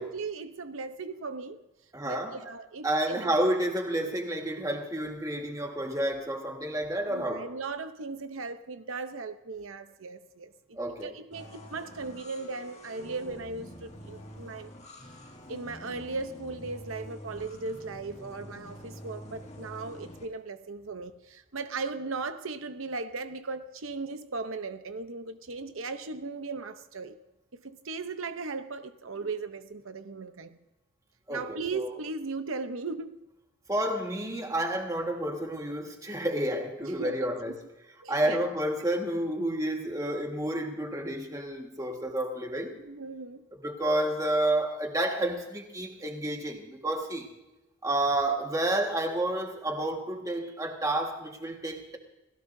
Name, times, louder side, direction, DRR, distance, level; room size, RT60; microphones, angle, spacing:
voice 1, 0.0-1.6 2.0-3.5 7.1-14.7 15.5-27.2 27.5-30.6 31.3-33.2 36.9-37.3 38.0-38.5 42.8-43.4, right 3 dB, 80° right, 0.8 m, -37 dB
voice 2, 1.9-2.5 2.8-7.5 10.8-11.2 31.3-31.9 33.7-37.5 38.1-42.7 43.5-47.3 47.8-52.0, right 1 dB, 15° right, 1.6 m, -30 dB
sound 1, 11.3-20.2, left 1 dB, 30° left, 2.1 m, -47 dB
28.5 x 16.5 x 2.7 m
head